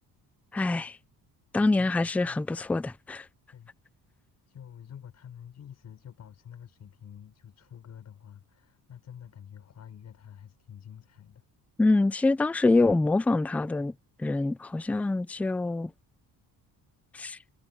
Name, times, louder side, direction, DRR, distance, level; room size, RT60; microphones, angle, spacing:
voice 1, 0.5-0.9 1.5-3.3 11.8-13.9 14.2-15.9 17.1-17.4, left 2 dB, 5° left, 0.4 m, -25 dB
voice 2, 1.6-2.4 3.5-3.7 4.5-11.4, left 9 dB, 45° left, 6.5 m, -48 dB
cardioid pair, 165°, 37 cm